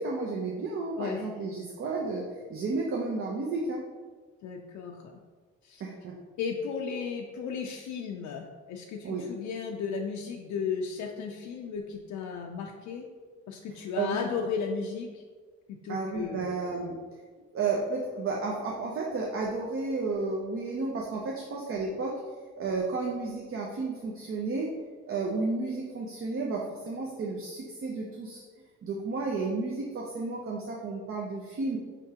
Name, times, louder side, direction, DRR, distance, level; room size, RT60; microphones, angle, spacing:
voice 1, 0.0-3.8 5.8-6.2 9.0-9.2 14.0-14.3 15.9-17.0 17.5-22.2 22.6-24.7 25.1-28.4 28.8-31.8, right 3 dB, 45° right, -2 dB, 0.6 m, -32 dB
voice 2, 0.9-1.3 4.4-5.2 5.6-5.8 6.4-13.1 13.5-15.2 15.7-16.5, left 6 dB, 75° left, 1 dB, 0.5 m, -35 dB
4.7 x 3.5 x 2.8 m, 1.5 s
cardioid pair, 90°, 30 cm